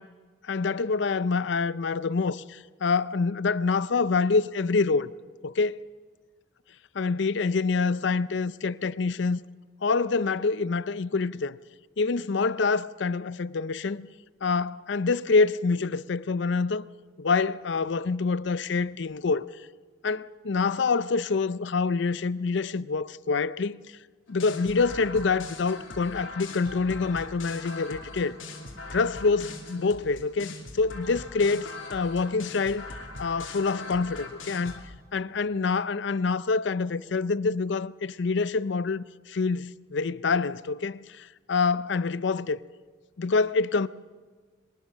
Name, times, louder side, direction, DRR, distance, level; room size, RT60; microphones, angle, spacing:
voice 1, 0.4-5.1 5.4-5.8 6.9-9.4 9.8-11.6 12.0-14.1 14.4-16.9 17.2-19.6 20.0-23.8 24.3-28.4 28.9-32.8 33.2-34.9 35.1-42.6 43.2-43.9, left 4 dB, 65° left, 0.5 m, -26 dB
sound 1, 24.3-34.8, left 2 dB, 85° left, 3.1 m, -41 dB
22.5 x 19.5 x 6.5 m
head